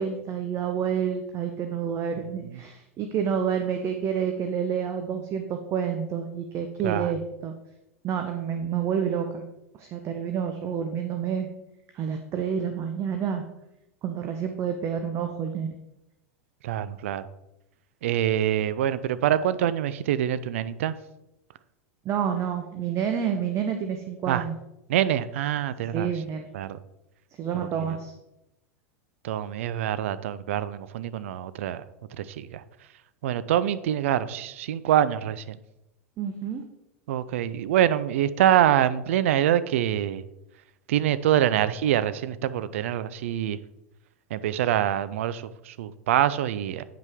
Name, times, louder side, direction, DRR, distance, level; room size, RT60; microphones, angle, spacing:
voice 1, 0.0-7.5 8.0-9.4 9.8-11.5 11.9-13.4 14.0-15.7 22.0-24.5 25.9-26.5 27.4-28.1 36.2-36.6, right 7 dB, 35° right, 5 dB, 0.8 m, -29 dB
voice 2, 16.6-17.3 18.0-20.9 24.3-24.4 24.9-26.1 26.5-26.8 27.5-28.0 29.2-31.8 32.1-32.6 33.2-35.6 37.1-40.2 40.9-43.6 44.3-46.8, right 11 dB, 65° right, 15 dB, 0.5 m, -25 dB
9.2 x 5.3 x 3.6 m, 0.89 s
figure-of-eight pair, 90°, 8 cm